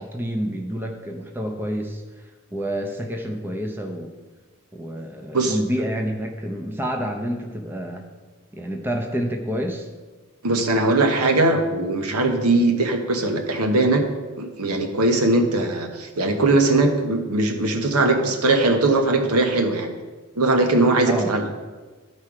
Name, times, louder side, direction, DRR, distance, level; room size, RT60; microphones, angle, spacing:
voice 1, 0.0-2.0 2.5-4.1 4.7-8.0 8.5-9.9 21.0-21.3, equal, 10° right, 3 dB, 0.7 m, -28 dB
voice 2, 10.4-14.0 14.4-19.9 20.4-21.5, right 2 dB, 90° right, 5 dB, 1.1 m, -20 dB
12.5 x 4.4 x 4.9 m, 1.3 s
head